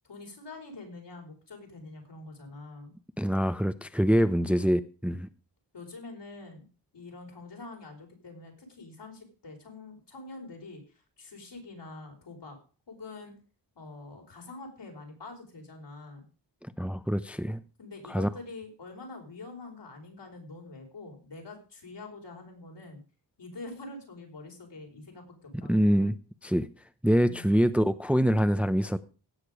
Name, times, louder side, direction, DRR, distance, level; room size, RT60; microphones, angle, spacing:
voice 1, 0.0-2.9 5.7-6.7 6.9-12.6 12.9-13.3 13.7-16.2 17.8-23.0 23.4-26.0 27.2-27.5, left 3 dB, 75° left, 2 dB, 4.7 m, -45 dB
voice 2, 3.2-5.3 16.6-17.6 18.1-18.3 25.7-26.2 26.4-26.7 27.0-29.0, equal, 5° right, 12 dB, 0.7 m, -25 dB
17.0 x 6.7 x 4.9 m, 0.36 s
cardioid pair, 60°, 42 cm